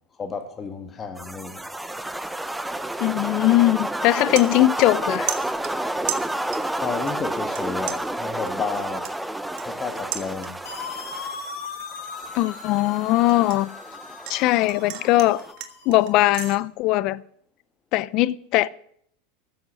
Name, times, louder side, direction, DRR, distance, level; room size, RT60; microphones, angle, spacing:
voice 1, 0.2-1.6 6.8-9.1 9.6-10.6, left 5 dB, 25° left, 1.8 m, -31 dB
sound 1, 1.2-15.5, right 1 dB, 5° right, 0.8 m, -31 dB
voice 2, 3.0-5.3 12.3-13.7 14.3-15.4 15.9-17.2 17.9-18.7, left 17 dB, 55° left, 0.6 m, -20 dB
sound 2, 3.6-3.7 4.0-5.0 5.3-6.8 7.1-7.6 7.9-10.8 11.2-11.5 11.9-14.4 14.7-16.6, right 12 dB, 55° right, 1.5 m, -35 dB
sound 3, 10.7-16.4, left 5 dB, 80° left, 3.6 m, -39 dB
14.0 x 7.9 x 6.3 m
hypercardioid pair, 105°, 0 cm